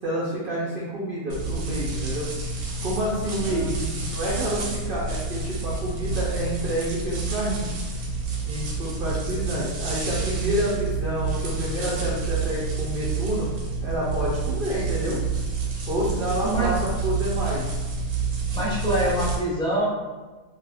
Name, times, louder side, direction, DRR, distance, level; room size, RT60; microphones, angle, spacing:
voice 1, 0.0-2.3 2.8-3.7 4.1-7.7 8.5-13.5 13.8-15.2 15.9-17.7, equal, 55° right, -6 dB, 0.6 m, -28 dB
sound 1, 1.3-19.3, right 4 dB, 90° right, 1.2 m, -29 dB
voice 2, 3.4-4.1 16.4-16.7 18.5-19.9, right 1 dB, 5° left, -8 dB, 0.6 m, -26 dB
2.7 x 2.4 x 3.3 m, 1.3 s
omnidirectional pair, 1.5 m